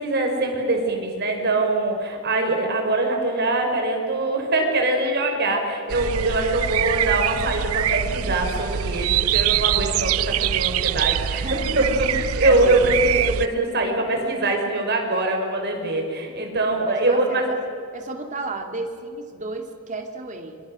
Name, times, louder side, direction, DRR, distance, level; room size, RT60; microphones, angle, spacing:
voice 1, 0.0-11.8 12.1-17.5, right 2 dB, 50° right, 3 dB, 5.2 m, -23 dB
sound 1, 5.9-13.5, right 10 dB, 85° right, 0.5 m, -24 dB
voice 2, 11.4-13.2 16.9-17.6 17.9-20.6, right 3 dB, 35° right, 4 dB, 2.8 m, -34 dB
26.5 x 26.0 x 6.5 m, 2.6 s
head